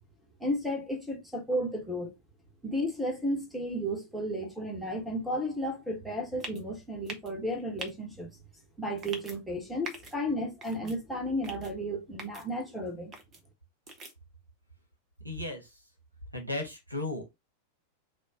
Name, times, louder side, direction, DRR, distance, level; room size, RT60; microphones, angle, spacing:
voice 1, 0.4-2.1 2.6-8.3 8.8-13.1, equal, ahead, 1.5 m, -33 dB
sound 1, 6.4-6.6 7.1-7.3 7.8-7.9 9.0-9.4 9.8-10.1 10.6-11.0 11.4-11.7 12.2-12.4 13.1-13.4 13.9-14.1, right 3 dB, 25° right, 1.0 m, -42 dB
voice 2, 15.2-15.6 16.3-17.3, left 2 dB, 85° right, 1.1 m, -35 dB
4.3 x 2.6 x 3.6 m
figure-of-eight pair, 90°, 0 cm